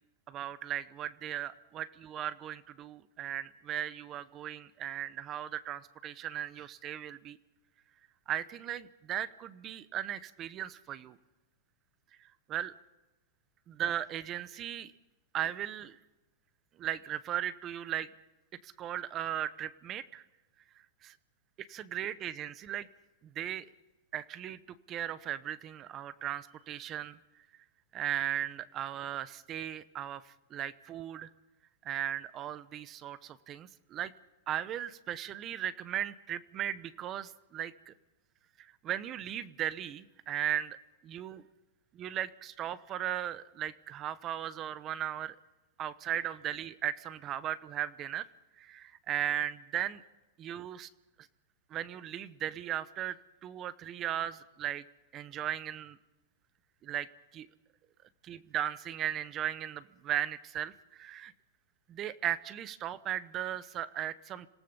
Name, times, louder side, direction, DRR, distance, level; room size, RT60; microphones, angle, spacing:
voice 1, 0.3-7.4 8.3-11.2 12.5-12.7 13.7-14.9 15.3-16.0 16.8-18.1 18.6-20.2 21.0-21.1 21.6-22.9 23.3-23.7 24.1-24.6 24.9-27.2 27.9-31.3 31.8-34.1 34.5-37.9 38.8-40.8 41.0-41.4 41.9-45.3 45.8-48.3 48.6-50.0 50.4-50.9 51.7-54.8 55.1-56.0 56.8-57.1 57.3-57.5 58.2-61.3 61.9-64.5, right 11 dB, 30° right, 16 dB, 0.9 m, -37 dB
27.0 x 18.0 x 5.5 m, 1.0 s
supercardioid pair, 140°, 0 cm